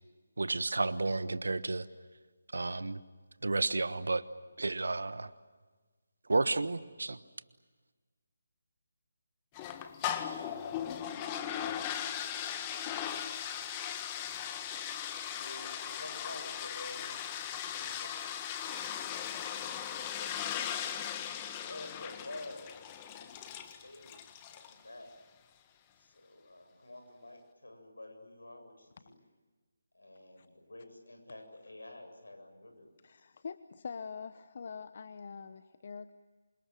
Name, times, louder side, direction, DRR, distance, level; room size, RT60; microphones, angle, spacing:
voice 1, 0.4-1.9 2.5-3.0 3.4-4.2 4.6-5.3 6.3-7.2, right 3 dB, 70° right, 14 dB, 1.3 m, -31 dB
sound 1, 9.5-24.8, left 9 dB, 20° left, 1.7 m, -38 dB
voice 2, 15.3-17.3 17.6-18.3 18.6-18.9 19.5-20.7 21.6-22.9 23.1-25.1 26.0-29.2 29.9-32.9, left 2 dB, 75° left, 5 dB, 7.8 m, -50 dB
voice 3, 33.0-36.1, left 5 dB, 45° left, 13 dB, 0.9 m, -44 dB
28.0 x 25.5 x 7.6 m, 1.4 s
figure-of-eight pair, 150°, 0 cm